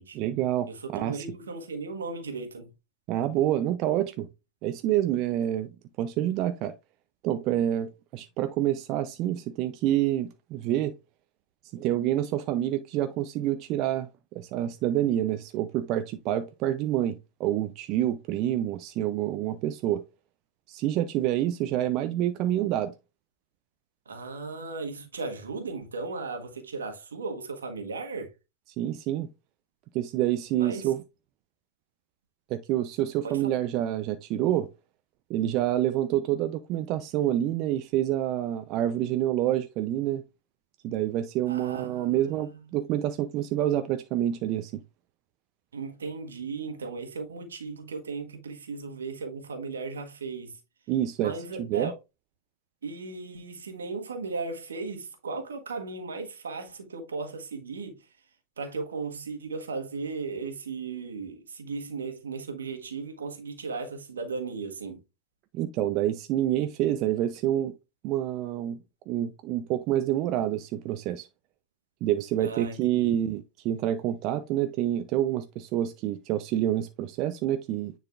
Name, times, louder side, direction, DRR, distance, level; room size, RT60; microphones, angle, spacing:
voice 1, 0.1-1.3 3.1-4.3 4.6-5.7 6.0-6.7 7.2-10.9 11.7-20.0 20.7-22.9 28.8-29.3 29.9-31.0 32.5-34.7 35.3-40.2 40.8-44.8 50.9-51.3 51.7-51.9 65.5-67.7 68.0-68.8 69.1-71.3 72.0-77.9, right 12 dB, 45° right, 0.5 m, -27 dB
voice 2, 0.7-2.7 24.0-28.3 30.5-30.9 33.2-33.5 41.5-42.6 45.7-50.6 51.2-51.9 52.8-58.1 58.6-65.0 72.4-73.1, right 4 dB, 80° right, 1.5 m, -36 dB
9.5 x 4.0 x 2.4 m
hypercardioid pair, 95°, 0 cm